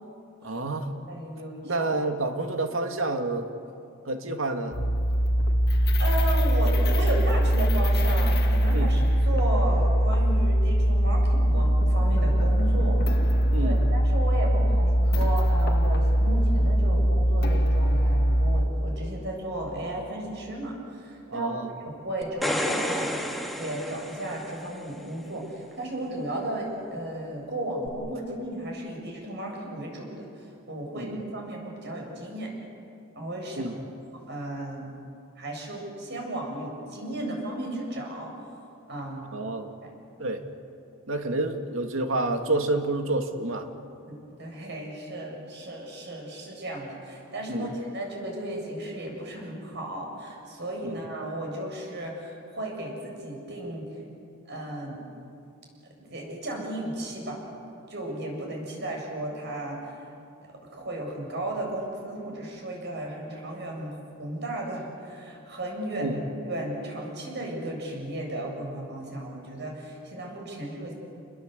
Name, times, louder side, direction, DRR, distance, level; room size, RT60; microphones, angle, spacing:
voice 1, 0.4-0.9 1.6-3.5 4.1-4.8 8.7-8.9 13.5-13.8 21.3-21.7 30.9-31.2 33.6-33.8 39.3-39.7 40.2-40.4 41.1-43.7 47.5-47.7 50.8-51.0 66.0-66.2, right 2 dB, 75° right, 5 dB, 2.2 m, -29 dB
voice 2, 1.1-1.9 6.0-13.0 13.6-21.5 21.9-23.3 23.6-32.5 33.2-33.6 34.3-34.9 35.4-38.3 38.9-39.2 39.8-39.9 44.1-53.9 54.5-55.0 55.9-57.4 57.9-59.9 60.5-70.9, right 1 dB, 55° right, 0 dB, 7.3 m, -34 dB
sound 1, 4.7-18.7, equal, 55° left, 1.9 m, -22 dB
sound 2, 22.2-24.8 27.9-28.0, equal, ahead, 1.8 m, -30 dB
29.0 x 20.5 x 8.2 m, 2.6 s
head